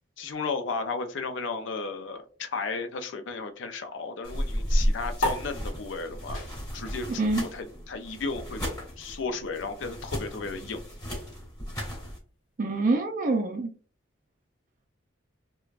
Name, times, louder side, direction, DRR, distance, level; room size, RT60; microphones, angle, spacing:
voice 1, 0.2-6.4 6.7-8.6 9.0-10.8, left 4 dB, 70° left, 0.5 m, -34 dB
sound 1, 4.2-12.2, equal, 15° left, 1.3 m, -33 dB
sound 2, 5.2-12.0, left 2 dB, 90° left, 1.0 m, -38 dB
voice 2, 12.6-13.7, right 2 dB, 40° right, 0.4 m, -25 dB
3.2 x 2.2 x 2.4 m
head